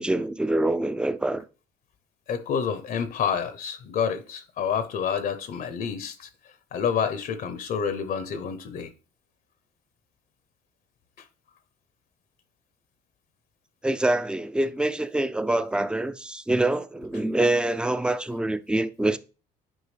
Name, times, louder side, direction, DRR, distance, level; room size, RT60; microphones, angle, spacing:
voice 1, 0.0-1.4 13.8-19.2, right 2 dB, 5° right, 0.4 m, -25 dB
voice 2, 2.3-6.3 6.7-8.9, left 7 dB, 60° left, 0.8 m, -28 dB
9.8 x 4.6 x 3.3 m
cardioid pair, 110°, 17 cm